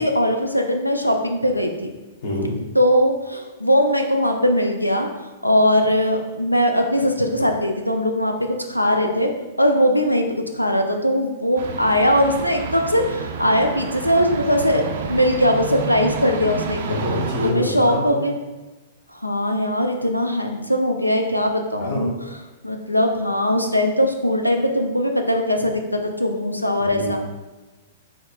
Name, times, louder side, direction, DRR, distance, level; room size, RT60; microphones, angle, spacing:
voice 1, 0.0-1.9 2.7-5.1 5.4-9.3 9.6-14.8 15.1-17.0 17.4-18.3 19.1-22.1 22.6-27.2, equal, 85° left, 4 dB, 0.3 m, -20 dB
voice 2, 2.2-2.5 16.8-18.3 21.8-22.1 26.9-27.2, left 1 dB, 50° left, -3 dB, 1.2 m, -26 dB
sound 1, 11.6-17.5, right 5 dB, 50° right, 0.4 m, -30 dB
4.1 x 3.0 x 2.4 m, 1.2 s
figure-of-eight pair, 110°, 0 cm